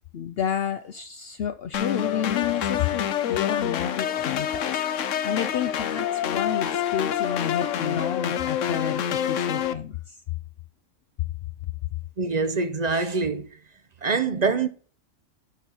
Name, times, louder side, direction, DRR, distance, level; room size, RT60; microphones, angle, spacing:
voice 1, 0.1-10.2, left 9 dB, 60° left, 0.7 m, -30 dB
sound 1, 1.7-9.7, left 9 dB, 85° left, 1.1 m, -27 dB
voice 2, 12.2-13.5 14.0-14.7, right 4 dB, 40° right, 0.7 m, -24 dB
11.5 x 4.5 x 5.5 m
omnidirectional pair, 1.3 m